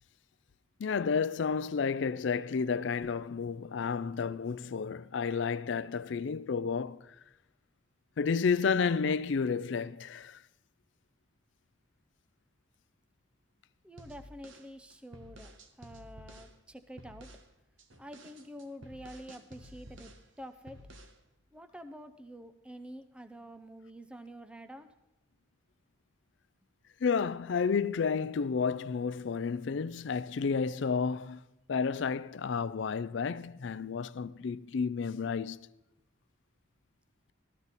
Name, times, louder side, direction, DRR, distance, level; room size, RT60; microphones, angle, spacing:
voice 1, 0.8-7.0 8.2-10.4 27.0-31.4 31.7-35.6, left 5 dB, 65° left, 0.4 m, -31 dB
voice 2, 13.8-17.3 18.0-20.8 21.5-24.9, equal, 5° right, 0.5 m, -48 dB
sound 1, 14.0-16.5 17.0-17.5 17.8-20.3 20.7-21.2, equal, 75° right, 1.4 m, -52 dB
14.5 x 13.5 x 4.1 m
head